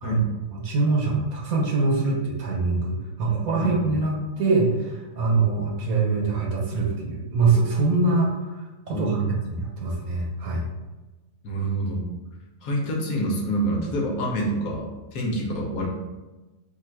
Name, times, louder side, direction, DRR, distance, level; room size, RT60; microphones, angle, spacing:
voice 1, 0.5-9.2 9.5-10.7, right 3 dB, 65° right, -2 dB, 1.3 m, -24 dB
voice 2, 3.6-3.9 8.9-9.4 11.4-12.1 12.6-15.9, right 1 dB, 65° left, -1 dB, 1.1 m, -27 dB
3.7 x 2.4 x 4.5 m, 1.1 s
omnidirectional pair, 1.7 m